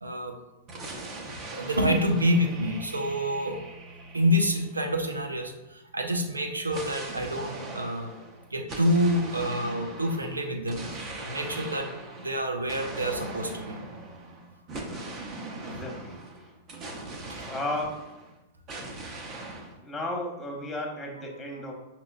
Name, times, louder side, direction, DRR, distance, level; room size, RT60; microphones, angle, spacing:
voice 1, 0.0-0.4 1.5-3.6 4.1-8.1 8.5-11.9 12.1-13.8 17.3-17.5, equal, 85° right, 4 dB, 0.6 m, -27 dB
sound 1, 0.7-5.4 6.7-18.3 18.7-19.8, right 2 dB, 35° right, 0.8 m, -40 dB
voice 2, 15.6-16.2 17.5-17.9 19.8-21.7, left 1 dB, 10° left, 0 dB, 1.0 m, -34 dB
6.0 x 2.8 x 2.5 m, 1.0 s
figure-of-eight pair, 100°, 0 cm